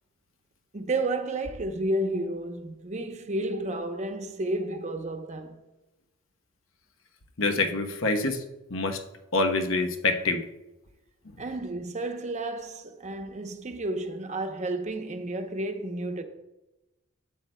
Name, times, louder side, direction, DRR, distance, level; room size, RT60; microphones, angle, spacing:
voice 1, 0.7-5.6 11.4-16.2, right 2 dB, 35° right, 0.8 m, -31 dB
voice 2, 7.4-8.4 8.7-9.0 9.3-10.4, left 3 dB, 85° left, 1.0 m, -26 dB
12.0 x 9.0 x 2.2 m
head